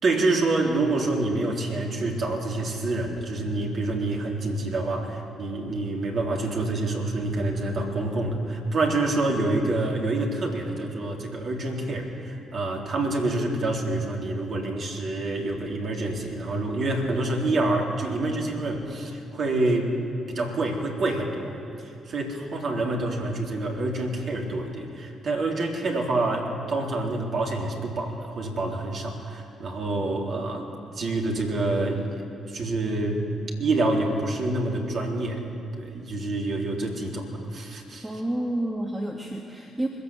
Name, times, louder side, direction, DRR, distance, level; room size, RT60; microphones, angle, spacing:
voice 1, 0.0-19.9 20.3-21.6 21.8-30.7 30.9-32.2 32.4-33.2 33.6-35.5 35.8-38.1, right 2 dB, 55° right, 0 dB, 3.8 m, -27 dB
voice 2, 38.0-39.9, right 1 dB, 10° right, 0 dB, 2.4 m, -29 dB
22.0 x 15.5 x 7.8 m, 2.7 s
hypercardioid pair, 40°, 0 cm